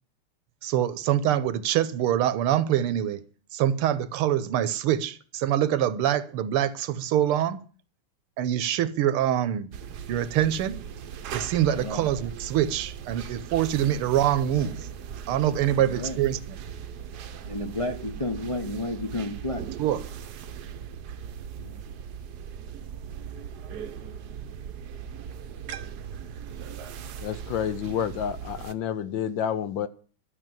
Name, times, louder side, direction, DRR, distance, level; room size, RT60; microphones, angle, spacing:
voice 1, 0.6-3.2 3.5-7.6 8.4-9.7 10.1-10.8 11.3-14.9 15.3-16.6 19.8-20.0, right 11 dB, 80° right, 1.7 m, -25 dB
sound 1, 9.7-28.7, right 8 dB, 60° right, 1.1 m, -39 dB
voice 2, 15.8-16.2 17.4-19.7 21.6-21.8, left 2 dB, 40° left, 0.4 m, -32 dB
voice 3, 27.2-29.9, left 9 dB, 70° left, 1.4 m, -29 dB
12.5 x 6.7 x 9.0 m
omnidirectional pair, 2.4 m